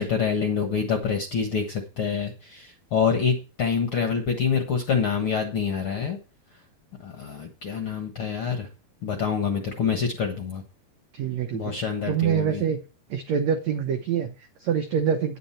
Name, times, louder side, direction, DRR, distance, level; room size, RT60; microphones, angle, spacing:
voice 1, 0.0-6.2 7.0-8.7 9.0-10.6 11.5-12.6, left 6 dB, 60° left, 5 dB, 1.4 m, -26 dB
voice 2, 11.1-12.8 13.1-15.4, right 8 dB, 85° right, 7 dB, 1.5 m, -26 dB
9.8 x 9.3 x 4.3 m, 0.33 s
omnidirectional pair, 4.5 m